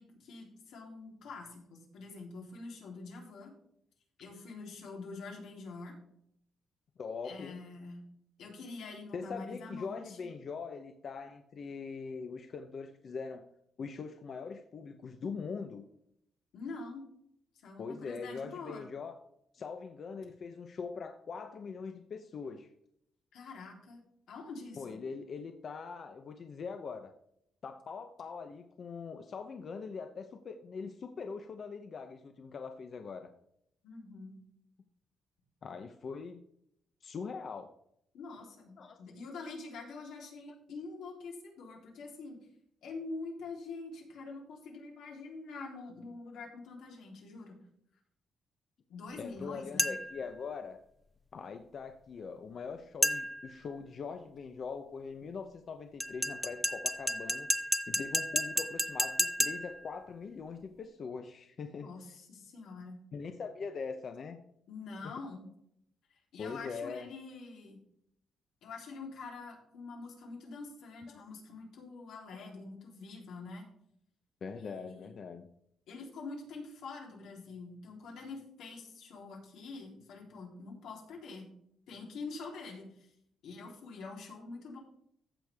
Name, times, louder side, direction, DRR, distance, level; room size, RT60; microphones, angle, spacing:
voice 1, 0.0-3.5 4.2-6.0 7.2-8.1 8.4-10.3 16.5-17.1 17.6-18.9 23.3-24.0 24.3-25.0 33.8-34.4 38.1-42.4 42.8-47.6 48.9-49.9 61.8-63.0 64.7-65.4 66.3-67.8 68.6-73.7 74.6-75.2 75.9-81.5 81.9-83.1 83.4-84.8, left 3 dB, 85° left, -1 dB, 3.5 m, -45 dB
voice 2, 7.0-7.6 9.1-13.5 13.8-15.8 17.8-19.2 19.5-22.7 24.8-27.1 27.6-33.3 35.6-36.4 37.0-37.7 38.8-39.0 49.2-50.8 51.3-57.5 57.9-61.9 63.1-64.4 65.0-65.1 66.4-67.1 71.1-71.2 74.4-75.5, left 5 dB, 45° left, 6 dB, 0.7 m, -42 dB
sound 1, 49.8-50.2 53.0-53.5 56.0-59.8, equal, ahead, 0.5 m, -32 dB
15.0 x 6.5 x 3.5 m, 0.72 s
cardioid pair, 150°, 0 cm